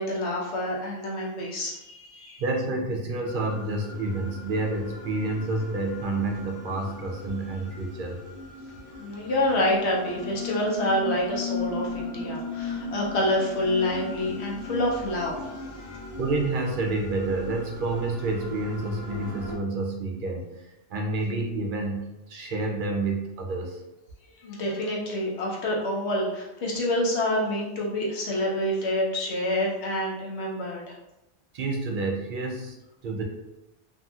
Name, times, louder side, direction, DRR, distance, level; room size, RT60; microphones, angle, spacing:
voice 1, 0.0-2.4 9.0-16.1 24.4-30.9, left 1 dB, 75° left, -2 dB, 1.0 m, -27 dB
voice 2, 2.4-8.2 16.2-23.8 31.5-33.2, right 2 dB, 60° right, 1 dB, 0.6 m, -29 dB
sound 1, 3.3-19.5, left 3 dB, 45° left, 0.7 m, -37 dB
2.7 x 2.7 x 2.3 m, 0.95 s
omnidirectional pair, 1.2 m